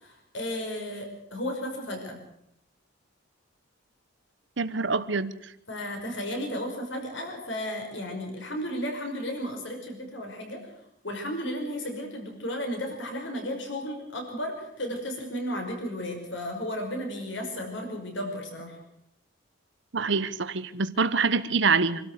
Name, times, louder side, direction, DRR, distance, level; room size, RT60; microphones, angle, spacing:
voice 1, 0.0-2.2 5.7-10.6 11.0-18.8, equal, 65° left, 3 dB, 5.6 m, -34 dB
voice 2, 4.6-5.3 19.9-22.1, right 4 dB, 65° right, 13 dB, 1.0 m, -25 dB
26.5 x 13.0 x 8.1 m, 0.77 s
head